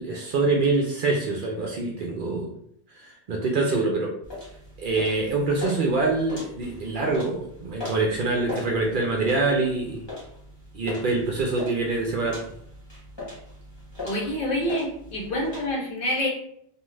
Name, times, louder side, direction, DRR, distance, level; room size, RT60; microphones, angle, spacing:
voice 1, 0.0-2.5 2.9-4.1 4.8-10.0 10.7-12.4, right 3 dB, 60° right, 0 dB, 0.6 m, -25 dB
sound 1, 4.2-15.7, left 2 dB, 25° left, 1.0 m, -40 dB
voice 2, 14.0-16.3, left 1 dB, 60° left, -1 dB, 0.9 m, -27 dB
2.4 x 2.4 x 3.1 m, 0.68 s
omnidirectional pair, 1.1 m